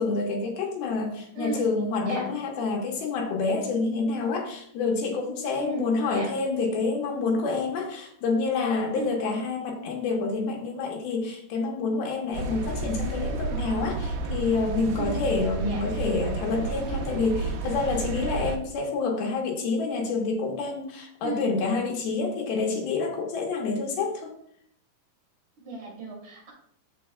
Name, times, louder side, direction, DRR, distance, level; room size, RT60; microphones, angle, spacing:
voice 1, 0.0-24.4, left 4 dB, 80° left, 1 dB, 3.1 m, -28 dB
voice 2, 1.3-1.7 2.0-2.3 5.6-6.3 8.9-9.2 15.0-15.2 15.6-15.9 21.2-21.5 25.7-26.5, right 3 dB, 55° right, -3 dB, 3.5 m, -35 dB
sound 1, 12.3-18.6, right 3 dB, 85° right, 2.7 m, -31 dB
13.5 x 4.7 x 2.3 m, 0.66 s
omnidirectional pair, 4.3 m